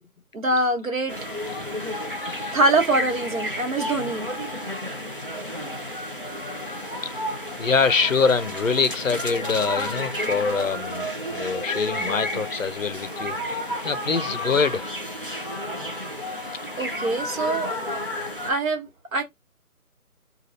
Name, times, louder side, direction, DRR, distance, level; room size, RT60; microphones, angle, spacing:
voice 1, 0.3-1.1 2.5-4.3 16.8-17.8 18.5-19.2, right 2 dB, 60° right, 1.3 m, -24 dB
sound 1, 1.1-18.5, left 1 dB, 40° right, 0.5 m, -31 dB
voice 2, 2.2-2.6 7.6-13.6 13.8-14.9 15.3-15.4, left 5 dB, 60° left, 0.5 m, -25 dB
3.3 x 2.3 x 2.6 m
hypercardioid pair, 180°, 45 cm